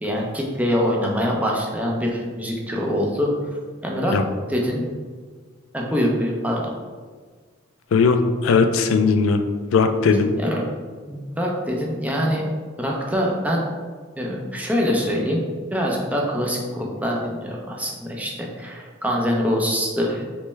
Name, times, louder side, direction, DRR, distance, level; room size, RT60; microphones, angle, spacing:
voice 1, 0.0-3.3 3.8-4.1 4.5-4.9 5.7-6.7 10.4-10.7 11.1-12.4 12.8-13.7 14.2-15.4 15.7-20.4, equal, 10° right, -2 dB, 0.5 m, -24 dB
voice 2, 7.9-9.4 9.7-10.3, left 4 dB, 85° left, 7 dB, 0.3 m, -18 dB
3.2 x 3.1 x 3.2 m, 1.5 s
head